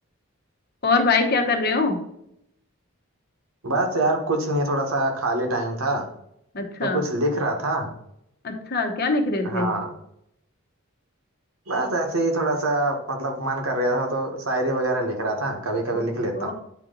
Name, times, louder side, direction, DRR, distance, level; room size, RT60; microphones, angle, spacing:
voice 1, 0.8-2.0 6.5-7.0 8.4-9.7 16.4-16.5, left 3 dB, 45° left, 4 dB, 0.9 m, -23 dB
voice 2, 3.6-6.1 6.8-7.9 9.4-9.9 11.7-16.5, right 2 dB, 75° right, 2 dB, 1.3 m, -25 dB
8.5 x 3.0 x 3.8 m, 0.75 s
head